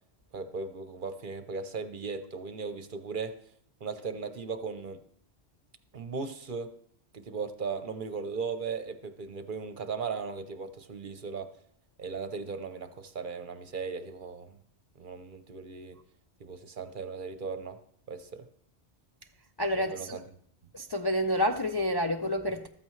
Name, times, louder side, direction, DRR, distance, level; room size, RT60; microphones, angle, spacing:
voice 1, 0.3-3.4 3.8-5.0 5.9-6.7 7.1-11.5 12.0-14.6 15.0-16.0 16.4-17.8 18.1-18.5 19.7-20.2, right 5 dB, 50° right, 0.9 m, -37 dB
voice 2, 19.6-20.2 20.7-22.7, equal, 30° left, 0.4 m, -29 dB
14.5 x 13.0 x 3.2 m
omnidirectional pair, 1.1 m